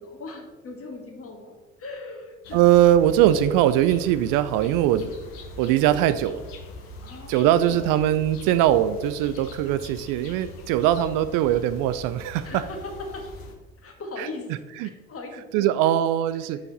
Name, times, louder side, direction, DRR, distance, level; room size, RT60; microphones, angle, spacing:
voice 1, 0.0-2.6 7.0-7.9 12.4-13.3 13.8-15.9, left 2 dB, 35° left, 3 dB, 1.6 m, -39 dB
sound 1, 2.4-13.5, left 2 dB, 65° left, 1.1 m, -42 dB
voice 2, 2.5-5.1 5.6-6.4 7.3-12.6 14.2-14.3 14.8-14.9 15.5-16.6, right 12 dB, 60° right, 12 dB, 0.5 m, -21 dB
5.7 x 5.7 x 4.0 m, 1.2 s
figure-of-eight pair, 55°, 38 cm